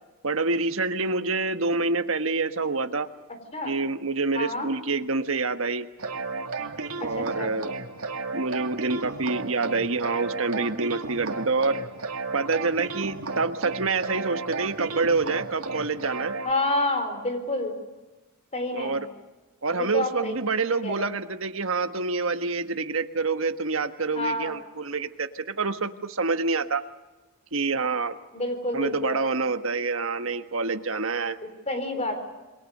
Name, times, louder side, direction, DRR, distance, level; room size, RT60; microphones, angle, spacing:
voice 1, 0.2-3.1 3.6-5.9 7.0-7.7 8.3-11.8 12.3-16.4 18.7-19.1 19.6-26.8 27.5-28.2 28.7-31.4, right 3 dB, 65° right, 9 dB, 1.5 m, -27 dB
voice 2, 4.3-4.7 7.0-7.5 16.4-17.7 18.5-19.0 19.7-20.3 20.8-21.1 24.1-24.5 28.3-29.2 31.7-32.1, left 2 dB, 30° left, 7 dB, 4.3 m, -28 dB
sound 1, 6.0-16.5, right 4 dB, 85° right, 2.2 m, -34 dB
28.0 x 23.0 x 6.7 m, 1.2 s
head